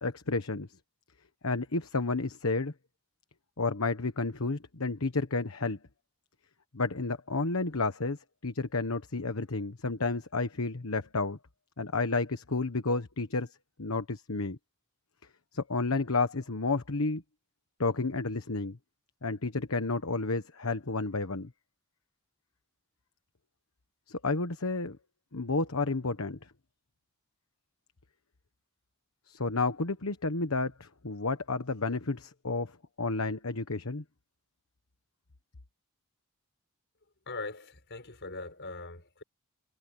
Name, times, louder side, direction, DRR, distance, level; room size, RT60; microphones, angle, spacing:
voice 1, 0.0-0.7 1.4-2.7 3.6-5.8 6.7-8.2 8.4-11.4 11.8-13.5 13.8-14.6 15.5-17.2 17.8-18.8 19.2-21.5 24.1-25.0 25.3-26.4 29.3-32.7 33.0-34.0, left 3 dB, 70° left, 1.3 m, -31 dB
voice 2, 37.3-39.2, left 3 dB, 55° left, 5.7 m, -41 dB
head